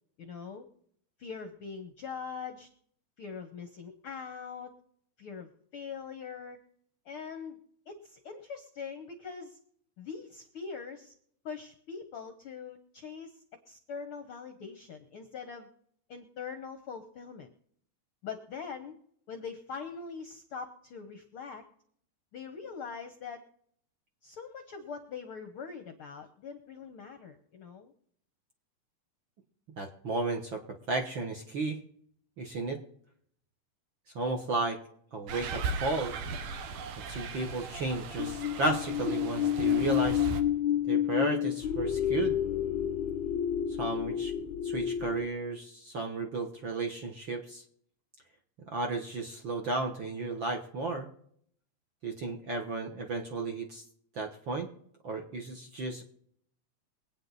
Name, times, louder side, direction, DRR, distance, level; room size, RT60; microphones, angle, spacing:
voice 1, 0.2-0.7 1.2-2.7 3.2-4.7 5.2-6.6 7.1-7.6 7.9-9.6 10.0-11.1 11.4-15.7 16.1-17.5 18.2-19.0 19.3-21.6 22.3-23.4 24.2-27.9, left 5 dB, 65° left, 8 dB, 1.3 m, -42 dB
voice 2, 29.8-30.6 30.9-31.8 32.4-32.8 34.1-34.8 35.1-36.1 37.0-40.3 40.9-42.4 43.8-44.3 44.6-47.6 48.7-51.1 52.0-53.8 54.1-54.7 55.0-56.0, right 3 dB, 50° right, 2 dB, 1.5 m, -33 dB
sound 1, 35.3-40.4, right 4 dB, 75° right, 2.7 m, -38 dB
sound 2, 38.2-45.3, left 10 dB, 85° left, 1.0 m, -30 dB
23.5 x 9.0 x 4.1 m, 0.65 s
omnidirectional pair, 3.7 m